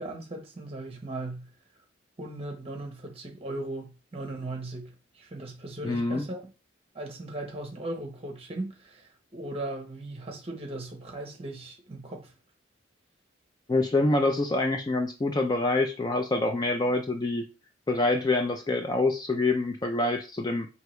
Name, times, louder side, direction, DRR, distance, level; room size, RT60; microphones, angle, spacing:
voice 1, 0.0-1.5 2.2-6.4 6.9-12.3, right 2 dB, 30° right, 0.9 m, -38 dB
voice 2, 5.8-6.2 13.7-17.4 17.9-20.7, left 2 dB, 20° left, 0.3 m, -26 dB
4.6 x 2.8 x 3.1 m
head